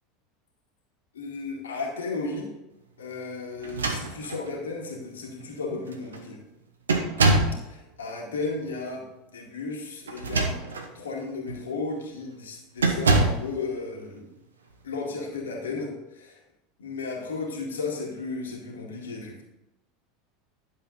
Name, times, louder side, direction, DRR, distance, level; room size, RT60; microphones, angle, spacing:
voice 1, 1.1-2.5 3.0-6.4 7.7-9.1 9.3-10.6 10.9-14.3 14.8-16.4 16.8-19.4, left 3 dB, 70° left, 0 dB, 2.1 m, -34 dB
sound 1, 3.6-4.5 5.4-5.5 5.9-6.2 6.9-7.6 10.1-10.9 11.5-11.7 12.8-13.5, right 2 dB, 75° right, 1.1 m, -24 dB
11.5 x 7.2 x 4.0 m, 0.96 s
figure-of-eight pair, 75°, 0 cm